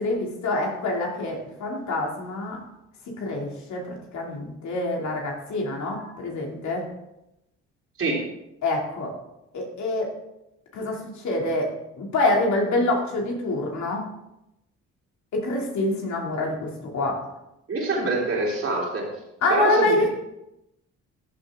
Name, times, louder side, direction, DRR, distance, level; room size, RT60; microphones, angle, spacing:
voice 1, 0.0-2.6 3.2-3.8 4.1-6.9 8.6-9.1 9.5-10.1 10.7-14.0 15.3-17.2 19.4-20.1, left 2 dB, 70° left, 0 dB, 2.8 m, -26 dB
voice 2, 17.7-19.1 19.5-20.1, right 3 dB, 50° right, -3 dB, 3.6 m, -25 dB
14.0 x 6.3 x 3.7 m, 0.87 s
cardioid pair, 90°, 30 cm